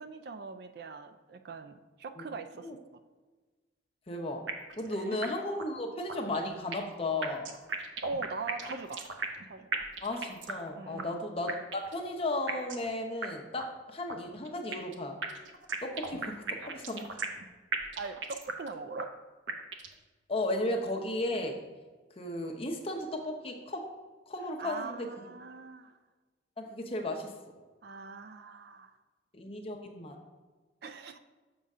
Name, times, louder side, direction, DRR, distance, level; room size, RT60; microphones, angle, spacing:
voice 1, 0.0-2.8 4.9-5.2 8.0-9.1 9.5-9.8 10.7-11.2 18.0-19.1 24.6-26.0 27.8-28.9 30.8-31.2, right 4 dB, 55° right, 9 dB, 0.4 m, -41 dB
voice 2, 4.1-4.5 4.8-7.5 8.7-8.8 10.0-11.5 11.9-15.2 15.8-17.2 20.3-21.6 22.2-23.9 24.3-25.1 26.6-27.3 29.3-30.2, left 1 dB, 30° left, 2 dB, 0.8 m, -35 dB
sound 1, 4.5-4.9 5.2-5.3 5.6-5.7 6.1-6.9 7.2-9.4 9.7-10.7 11.0-11.1 11.5-12.0 12.5-12.9 13.2-13.3 13.6-13.7 14.1-14.9 15.2-17.4 17.7-18.7 19.0-19.1 19.5-20.0, right 4 dB, 90° right, 0.7 m, -36 dB
7.0 x 3.6 x 5.4 m, 1.3 s
head